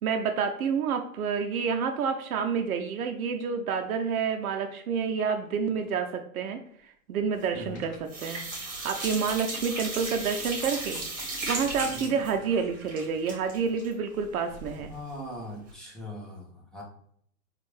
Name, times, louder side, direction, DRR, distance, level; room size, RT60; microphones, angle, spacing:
voice 1, 0.0-6.6 7.1-14.9, right 6 dB, 85° right, 5 dB, 0.6 m, -29 dB
sound 1, 7.4-7.8 8.1-14.9 15.3-15.4 15.7-15.8, right 2 dB, 20° right, 1.3 m, -36 dB
voice 2, 7.5-7.9 11.9-12.1 14.9-16.8, equal, ahead, -4 dB, 0.7 m, -40 dB
sound 2, 7.7-11.6, left 2 dB, 35° left, 1.1 m, -49 dB
4.3 x 2.4 x 3.2 m, 0.64 s
hypercardioid pair, 140°, 42 cm